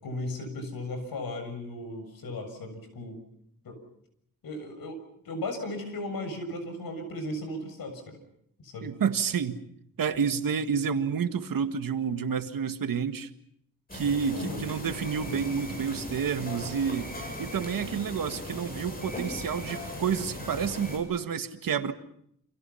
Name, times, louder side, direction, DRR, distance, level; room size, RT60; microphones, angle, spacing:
voice 1, 0.0-3.2 3.6-3.8 4.4-5.0 5.3-8.2 8.6-8.9 14.3-14.6, left 1 dB, 85° left, 7 dB, 7.1 m, -36 dB
voice 2, 8.8-9.6 10.0-13.3 13.9-17.1 17.4-21.9, right 6 dB, 70° right, 8 dB, 1.9 m, -29 dB
sound 1, 13.9-21.0, left 1 dB, 25° left, 7.6 m, -38 dB
29.0 x 27.0 x 5.7 m, 0.71 s
wide cardioid pair, 165°, 34 cm